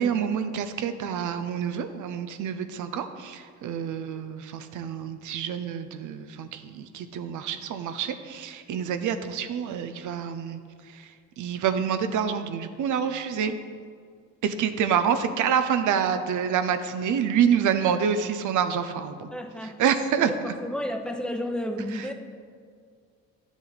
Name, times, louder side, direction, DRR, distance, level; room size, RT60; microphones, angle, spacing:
voice 1, 0.0-10.6 10.9-13.6 14.4-19.3 19.8-20.3 21.9-22.1, right 8 dB, 75° right, 9 dB, 0.7 m, -27 dB
voice 2, 19.3-19.8 20.2-22.1, left 1 dB, 5° left, 4 dB, 0.8 m, -32 dB
10.0 x 7.2 x 4.1 m, 2.1 s
cardioid pair, 90°, 30 cm